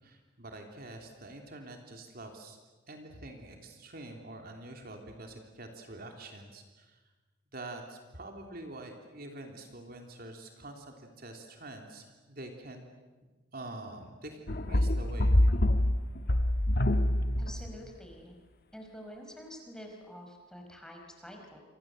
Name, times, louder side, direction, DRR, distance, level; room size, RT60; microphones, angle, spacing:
voice 1, 0.0-2.6 2.9-7.0 7.5-12.8 13.5-15.3, right 2 dB, 50° right, 3 dB, 3.3 m, -46 dB
sound 1, 14.5-17.8, left 1 dB, 55° left, 1.3 m, -26 dB
voice 2, 17.4-18.3 18.7-21.6, equal, 5° left, 2 dB, 4.9 m, -47 dB
29.0 x 25.5 x 7.8 m, 1.3 s
head